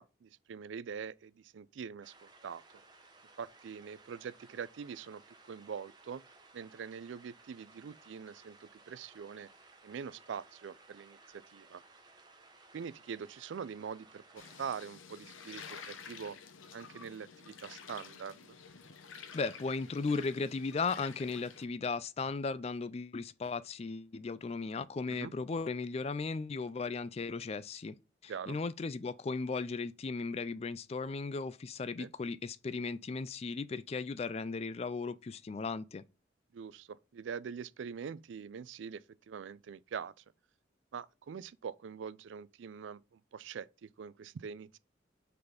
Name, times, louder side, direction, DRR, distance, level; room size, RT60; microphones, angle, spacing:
voice 1, 0.0-2.6 3.4-5.2 5.5-6.2 6.5-9.5 9.8-11.8 12.7-16.4 16.7-18.6 25.1-25.3 28.3-28.6 32.0-32.1 36.5-40.2 40.9-44.8, right 6 dB, 75° right, 0.4 m, -44 dB
sound 1, 2.0-14.7, right 3 dB, 20° right, 1.0 m, -60 dB
sound 2, 14.4-21.7, left 6 dB, 90° left, 0.9 m, -50 dB
voice 2, 19.3-27.9 28.2-36.0, left 4 dB, 30° left, 0.3 m, -36 dB
5.5 x 4.0 x 5.1 m
head